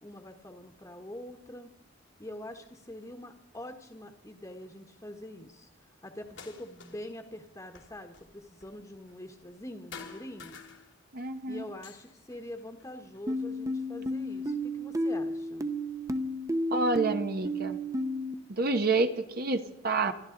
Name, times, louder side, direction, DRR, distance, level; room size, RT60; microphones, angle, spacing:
voice 1, 0.0-1.7 2.2-10.5 11.4-15.7, left 1 dB, 20° left, 2 dB, 1.3 m, -44 dB
sound 1, 6.2-7.2 7.4-9.6 9.9-11.3 11.6-13.5 14.2-15.1 16.0-16.1 16.7-17.8, left 5 dB, 85° left, 2.6 m, -51 dB
voice 2, 11.1-11.6 16.7-17.8 18.5-20.1, right 3 dB, 55° right, 8 dB, 1.1 m, -28 dB
sound 2, 13.3-18.3, equal, 15° right, 0.8 m, -32 dB
26.5 x 12.5 x 3.9 m, 0.92 s
head